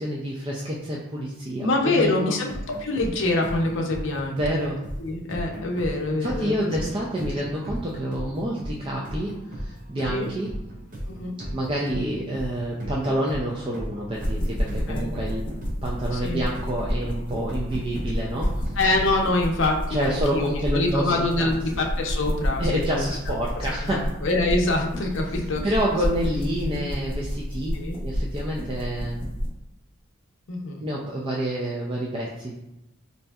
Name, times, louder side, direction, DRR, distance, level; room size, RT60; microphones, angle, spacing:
voice 1, 0.0-2.4 4.3-4.8 6.1-10.5 11.5-15.5 15.8-18.7 19.9-21.5 22.6-24.1 25.6-27.7 28.0-29.2 30.8-32.6, equal, 25° right, -4 dB, 0.3 m, -28 dB
voice 2, 1.6-2.5 2.8-4.7 5.0-6.7 7.2-7.3 10.1-10.3 11.1-11.3 14.9-15.1 16.1-16.4 18.8-23.4 23.8-25.7 27.7-28.0 30.5-30.8, left 2 dB, 60° left, 1 dB, 0.6 m, -25 dB
sound 1, 2.5-19.3, equal, 40° right, 0.7 m, -36 dB
sound 2, 14.1-29.5, equal, 25° left, 0.7 m, -30 dB
4.2 x 2.6 x 2.3 m, 0.91 s
head